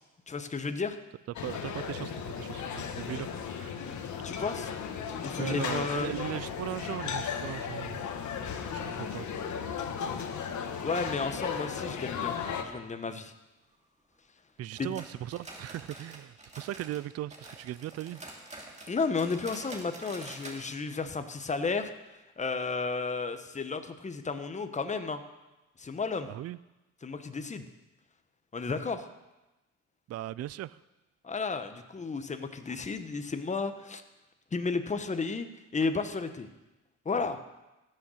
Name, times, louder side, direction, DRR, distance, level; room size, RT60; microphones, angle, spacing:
voice 1, 0.3-1.0 4.2-4.7 5.2-6.1 10.8-13.3 14.8-14.9 18.9-21.9 22.4-25.2 25.8-26.3 27.0-27.7 28.5-29.1 31.2-34.0 34.5-35.5 35.7-36.5 37.0-37.4, left 4 dB, 25° left, 1.0 m, -33 dB
sound 1, 1.4-12.6, left 7 dB, 70° left, 1.3 m, -36 dB
voice 2, 1.4-3.8 5.4-8.0 8.7-9.3 14.6-18.2 26.2-26.6 30.1-30.8, right 13 dB, 55° right, 0.4 m, -38 dB
sound 2, 14.8-17.0 17.3-20.6 20.9-21.0 21.4-21.5 22.1-22.2, right 2 dB, 25° right, 2.5 m, -46 dB
15.0 x 6.6 x 6.4 m
cardioid pair, 90°, 30 cm